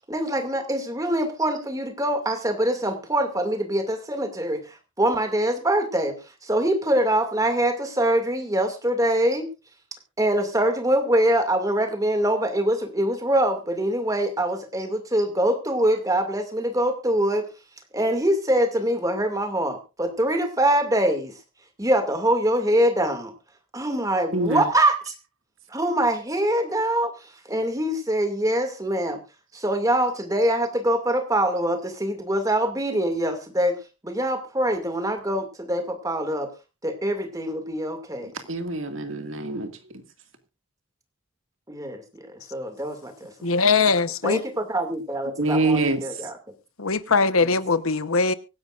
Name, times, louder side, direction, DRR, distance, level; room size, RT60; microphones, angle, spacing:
voice 1, 0.1-6.2 6.4-9.5 10.2-17.5 17.9-21.3 21.8-23.3 23.7-25.1 25.7-27.1 27.5-29.2 29.5-33.8 34.0-36.5 36.8-38.3 41.7-43.3 44.2-46.3 47.4-47.5, right 1 dB, 15° right, 2.3 m, -24 dB
voice 2, 24.3-24.7 38.2-40.0 45.4-46.0, right 2 dB, 70° right, 2.1 m, -25 dB
voice 3, 43.4-44.4 46.8-48.3, left 4 dB, 90° left, 1.1 m, -21 dB
24.5 x 10.5 x 2.5 m
head